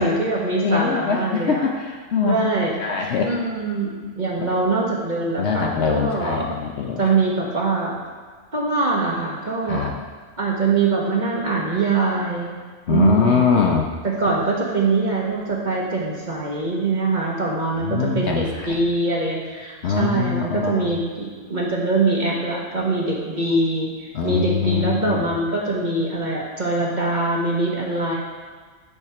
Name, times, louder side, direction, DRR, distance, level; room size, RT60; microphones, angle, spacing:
voice 1, 0.0-1.7 2.2-2.7 3.2-6.5 7.0-8.0 8.5-9.9 10.4-12.6 12.9-13.6 14.0-23.9 24.2-28.1, right 3 dB, 35° right, -3 dB, 1.3 m, -23 dB
voice 2, 0.6-3.3 5.4-7.0 9.7-10.0 12.9-13.9 17.8-18.8 19.8-20.9 24.1-25.3, left 6 dB, 60° left, 1 dB, 0.8 m, -23 dB
9.1 x 3.6 x 5.7 m, 1.5 s
omnidirectional pair, 1.4 m